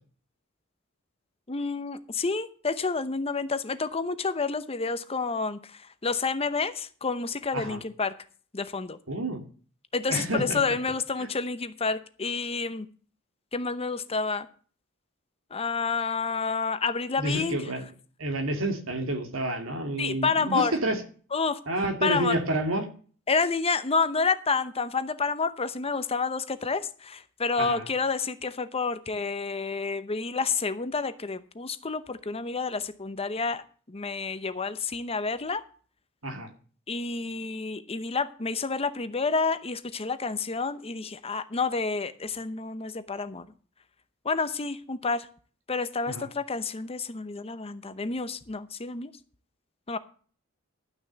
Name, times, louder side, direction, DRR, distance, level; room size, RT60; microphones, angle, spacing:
voice 1, 1.5-8.1 8.5-9.0 9.9-12.9 13.5-14.5 15.5-17.6 20.0-20.7 21.3-21.6 22.0-22.4 23.3-35.6 36.9-43.5 44.2-45.3 45.7-49.1 49.9-50.0, left 4 dB, 30° left, 0.8 m, -29 dB
voice 2, 9.1-9.4 10.1-10.6 11.2-11.3 17.2-17.8 18.2-21.0 21.7-22.9 27.6-27.9 36.2-36.5 46.1-46.3, right 1 dB, 70° right, 2.3 m, -29 dB
12.0 x 6.2 x 7.4 m
head